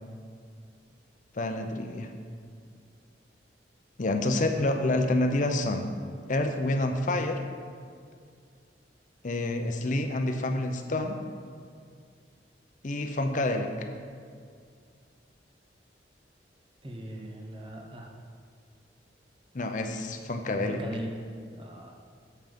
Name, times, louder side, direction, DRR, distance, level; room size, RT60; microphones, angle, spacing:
voice 1, 1.3-2.1 4.0-5.9 6.3-7.4 9.2-11.2 12.8-13.7 19.5-20.8, left 2 dB, 45° left, 5 dB, 0.6 m, -28 dB
voice 2, 16.8-18.1 20.7-21.1 21.5-21.9, equal, 30° right, 1 dB, 0.9 m, -39 dB
7.7 x 5.6 x 5.1 m, 2.2 s
head